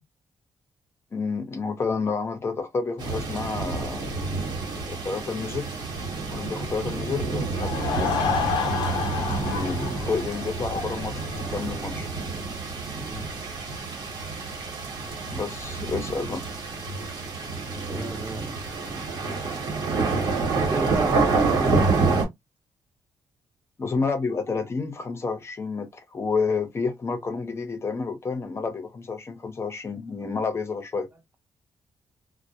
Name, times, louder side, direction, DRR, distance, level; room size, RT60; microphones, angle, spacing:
voice 1, 1.1-4.1 4.9-5.7 6.3-8.2 9.3-12.1 13.2-13.3 15.3-16.4 23.8-31.1, left 4 dB, 35° left, 0.7 m, -30 dB
sound 1, 3.0-22.2, right 4 dB, 80° right, 1.1 m, -28 dB
Laughter / Crowd, 7.4-11.9, left 6 dB, 85° left, 0.5 m, -30 dB
voice 2, 13.0-13.3 17.9-18.6 20.7-22.2, right 2 dB, 20° right, 0.7 m, -32 dB
2.1 x 2.1 x 2.8 m
cardioid pair, 105°, 8 cm